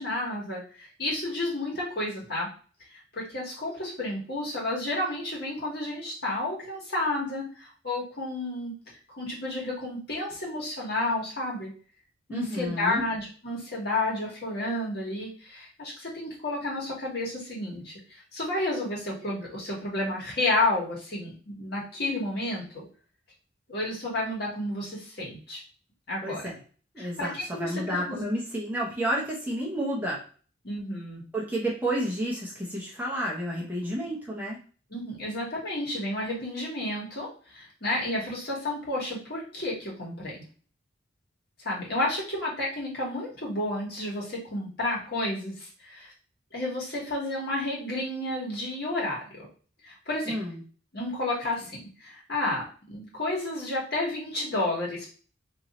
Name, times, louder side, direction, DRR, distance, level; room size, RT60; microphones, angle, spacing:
voice 1, 0.0-2.5 2.9-8.8 9.2-11.7 12.3-22.8 23.7-25.6 26.1-26.5 27.0-28.2 30.6-31.2 34.9-40.3 41.6-46.1 46.5-49.5 49.8-50.3 50.9-55.1, left 2 dB, 50° left, -4 dB, 1.5 m, -31 dB
voice 2, 12.3-13.0 26.2-26.6 26.9-30.2 31.3-34.6 50.3-50.6, right 1 dB, 10° right, -4 dB, 0.7 m, -30 dB
2.9 x 2.6 x 4.0 m, 0.40 s
head